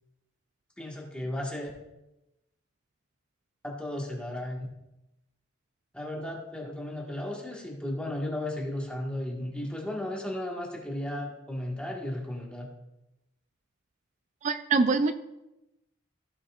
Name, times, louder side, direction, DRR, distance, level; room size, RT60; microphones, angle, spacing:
voice 1, 0.8-1.7 3.6-4.7 5.9-12.7, left 1 dB, 5° left, -2 dB, 1.5 m, -35 dB
voice 2, 14.4-15.1, right 4 dB, 35° right, 10 dB, 0.3 m, -24 dB
15.5 x 5.5 x 2.4 m, 0.94 s
head